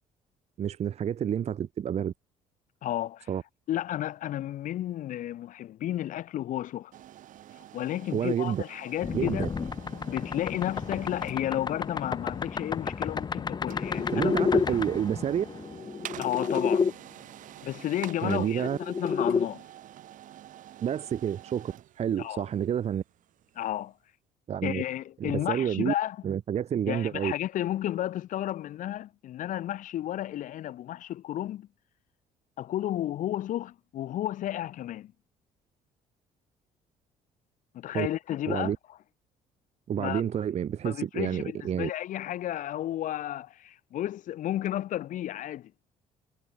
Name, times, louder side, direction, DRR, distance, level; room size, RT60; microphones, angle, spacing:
voice 1, 0.6-2.1 3.3-3.4 8.1-8.6 9.1-9.5 14.1-15.4 18.2-18.8 20.8-23.0 24.5-24.8 25.2-25.9 26.2-27.3 37.9-38.1 38.5-38.8 39.9-41.9, right 9 dB, 50° right, 0.9 m, -29 dB
voice 2, 2.8-3.3 3.7-6.9 7.7-9.5 10.0-14.7 16.2-16.9 17.6-19.6 22.2-22.5 23.6-23.9 24.6-26.2 26.9-31.7 32.6-35.1 37.7-38.7 40.0-40.2 40.8-45.7, left 12 dB, 65° left, 1.8 m, -32 dB
Laser Printer, 6.9-23.8, right 12 dB, 70° right, 6.8 m, -48 dB
sound 1, 9.0-16.9 18.2-19.5, left 5 dB, 30° left, 1.1 m, -30 dB
supercardioid pair, 80°, 14 cm